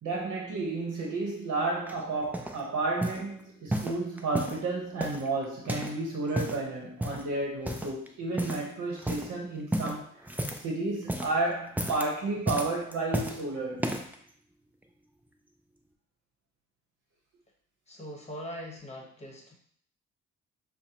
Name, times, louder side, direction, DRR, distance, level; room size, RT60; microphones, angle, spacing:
voice 1, 0.0-10.3 10.6-14.0, right 3 dB, 60° right, -1 dB, 0.9 m, -32 dB
sound 1, 1.9-2.6 3.0-3.3 3.7-4.6 5.0-6.0 6.2-6.6 7.0-7.3 7.7-8.1 8.4-8.7 9.0-9.3 9.7-10.7 11.0-11.4 11.7-12.1 12.5-13.4 13.8-14.2 14.8-14.9, right 1 dB, 5° right, 0.4 m, -33 dB
voice 2, 17.9-19.5, equal, 20° left, 0 dB, 1.2 m, -41 dB
6.0 x 2.1 x 2.9 m, 0.63 s
cardioid pair, 90°, 30 cm